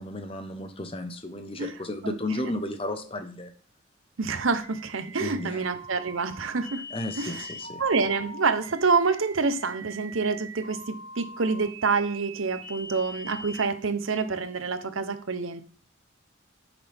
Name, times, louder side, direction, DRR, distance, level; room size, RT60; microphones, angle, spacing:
voice 1, 0.0-3.5 5.2-5.6 6.9-7.8, left 1 dB, 25° left, 8 dB, 0.9 m, -33 dB
voice 2, 4.2-6.8 7.2-7.5 7.8-15.6, right 4 dB, 75° right, 11 dB, 0.8 m, -27 dB
sound 1, 4.6-13.6, right 1 dB, 40° right, 2.9 m, -43 dB
10.0 x 6.0 x 3.5 m, 0.43 s
head